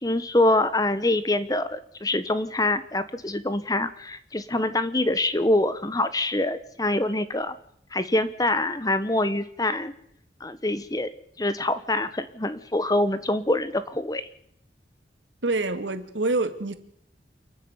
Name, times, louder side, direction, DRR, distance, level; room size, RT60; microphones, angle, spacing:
voice 1, 0.0-7.5 7.9-9.9 10.4-11.1 11.4-14.2, left 1 dB, 20° left, 13 dB, 1.2 m, -25 dB
voice 2, 15.4-16.7, right 2 dB, 90° right, 10 dB, 2.3 m, -26 dB
29.0 x 9.8 x 9.6 m, 0.71 s
head